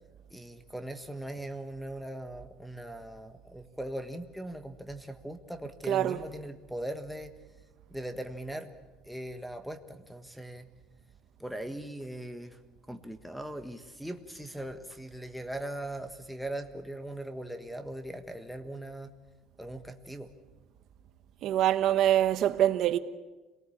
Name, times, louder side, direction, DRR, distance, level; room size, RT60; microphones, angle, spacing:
voice 1, 0.3-7.3 7.9-8.7 9.0-10.7 11.4-12.6 12.9-19.1 19.6-20.3, right 1 dB, ahead, 1.4 m, -40 dB
voice 2, 5.9-6.2 21.4-23.0, right 12 dB, 55° right, 1.2 m, -24 dB
27.0 x 19.0 x 8.7 m
cardioid pair, 145°, 0 cm